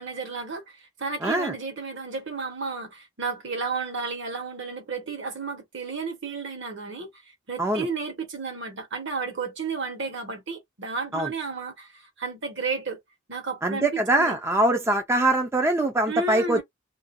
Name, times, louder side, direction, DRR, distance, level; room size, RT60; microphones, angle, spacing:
voice 1, 0.0-13.0 13.3-14.4 16.1-16.6, right 4 dB, 65° right, 1.1 m, -32 dB
voice 2, 1.2-1.5 7.6-7.9 11.1-11.3 13.6-16.6, right 1 dB, 15° right, 0.4 m, -23 dB
2.5 x 2.2 x 2.5 m
head